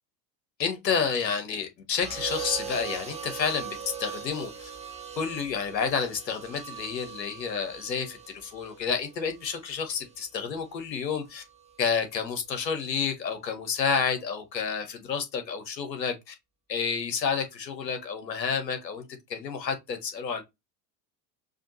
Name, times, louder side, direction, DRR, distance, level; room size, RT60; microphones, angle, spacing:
voice 1, 0.6-4.7 5.2-11.4 11.8-16.3 16.7-19.0 19.3-20.4, left 6 dB, 80° left, 1.3 m, -30 dB
sound 1, 2.0-10.2 11.4-11.8, right 7 dB, 15° right, 0.9 m, -40 dB
4.9 x 2.7 x 3.0 m
figure-of-eight pair, 75°, 50 cm